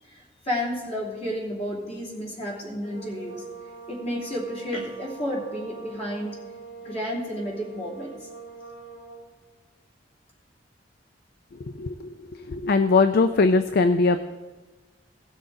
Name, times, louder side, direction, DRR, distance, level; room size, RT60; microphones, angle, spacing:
voice 1, 0.1-3.4 3.9-6.4 6.8-8.2, equal, 35° left, -3 dB, 2.9 m, -31 dB
sound 1, 2.7-9.3, right 4 dB, 85° left, 3.1 m, -43 dB
voice 2, 11.8-12.1 12.5-14.2, left 3 dB, 55° left, 9 dB, 0.4 m, -20 dB
18.0 x 6.3 x 3.8 m, 1.3 s
head